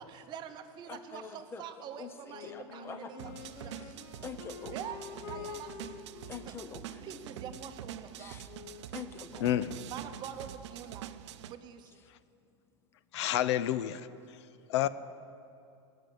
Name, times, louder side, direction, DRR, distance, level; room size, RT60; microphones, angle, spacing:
voice 1, 0.0-3.9 4.7-6.0 6.5-6.6 7.0-8.4 9.9-11.1 11.5-12.0, right 8 dB, 30° right, 8 dB, 0.8 m, -45 dB
voice 2, 0.9-3.4 3.8-4.8 6.3-7.1 8.2-8.5 8.8-9.6 11.9-12.0 13.3-13.4 14.2-14.5 14.8-14.9, left 5 dB, 15° left, 10 dB, 0.6 m, -46 dB
Wind instrument woodwind instrument, 2.2-8.9, left 7 dB, 55° left, 1.1 m, -48 dB
sound 1, 3.2-11.5, right 11 dB, 80° right, 0.6 m, -45 dB
voice 3, 13.1-14.0 14.7-14.9, left 12 dB, 75° left, 16 dB, 0.5 m, -28 dB
18.0 x 6.5 x 8.4 m, 2.6 s
supercardioid pair, 155°, 14 cm